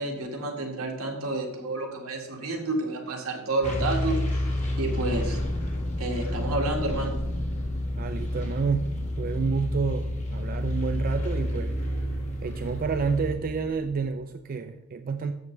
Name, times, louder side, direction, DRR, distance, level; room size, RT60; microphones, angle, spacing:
voice 1, 0.0-4.2 4.8-5.4 6.0-7.2, right 2 dB, 80° right, 1 dB, 1.8 m, -29 dB
sound 1, 3.6-13.3, left 1 dB, 35° left, 1.9 m, -30 dB
sound 2, 4.4-14.2, equal, 65° left, 1.7 m, -41 dB
voice 2, 8.0-11.8 12.4-15.3, right 5 dB, 40° right, 8 dB, 0.4 m, -29 dB
13.0 x 7.0 x 3.2 m, 0.93 s
head